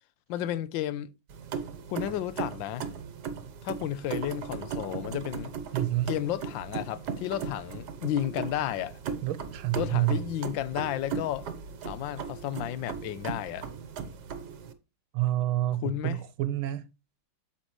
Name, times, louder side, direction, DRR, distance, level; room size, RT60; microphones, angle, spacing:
voice 1, 0.3-1.1 1.9-2.9 3.6-5.5 6.1-9.0 9.7-11.5 11.8-13.7 15.8-16.2, left 12 dB, 75° left, 1.3 m, -32 dB
sound 1, 1.3-14.7, right 6 dB, 60° right, 1.4 m, -37 dB
voice 2, 5.7-6.1 9.2-10.2 15.1-16.9, right 14 dB, 80° right, 1.7 m, -28 dB
8.8 x 7.2 x 3.1 m
omnidirectional pair, 2.3 m